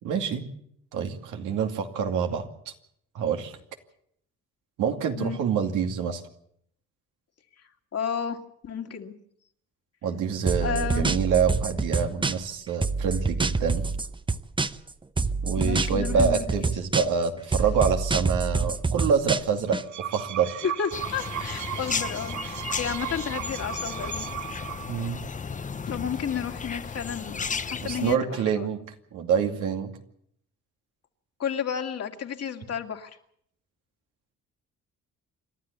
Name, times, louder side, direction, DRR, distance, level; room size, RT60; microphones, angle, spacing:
voice 1, 0.0-0.5 0.9-2.5 3.1-3.5 4.8-6.2 10.0-13.9 15.4-20.6 24.9-25.2 27.8-28.8 29.1-29.9, right 6 dB, 90° right, 4 dB, 2.5 m, -26 dB
voice 2, 7.9-8.4 8.6-9.1 10.6-11.1 15.6-16.7 20.6-24.3 25.4-28.7 31.4-33.1, left 7 dB, 55° left, 5 dB, 2.3 m, -32 dB
sound 1, 10.5-12.5 12.8-14.9 15.2-17.3 17.5-19.8, right 4 dB, 15° right, 0.8 m, -26 dB
sound 2, 19.7-25.1, right 11 dB, 70° right, 1.0 m, -36 dB
sound 3, 20.9-28.2, left 5 dB, 25° left, 0.8 m, -34 dB
28.5 x 12.5 x 8.2 m, 0.70 s
cardioid pair, 90°, 30 cm